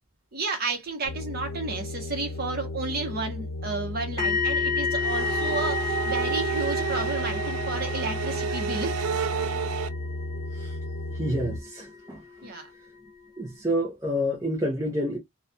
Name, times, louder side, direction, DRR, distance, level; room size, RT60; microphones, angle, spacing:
voice 1, 0.3-9.0 12.4-12.7, right 3 dB, 45° right, 0.8 m, -32 dB
sound 1, 1.1-11.6, left 1 dB, 70° left, 0.7 m, -34 dB
sound 2, 4.2-12.1 12.3-12.6, left 5 dB, 20° left, 0.8 m, -32 dB
sound 3, 5.0-9.9, right 8 dB, 80° right, 0.3 m, -30 dB
voice 2, 11.1-12.5 13.4-15.2, equal, 15° right, 0.5 m, -29 dB
2.4 x 2.1 x 2.6 m
head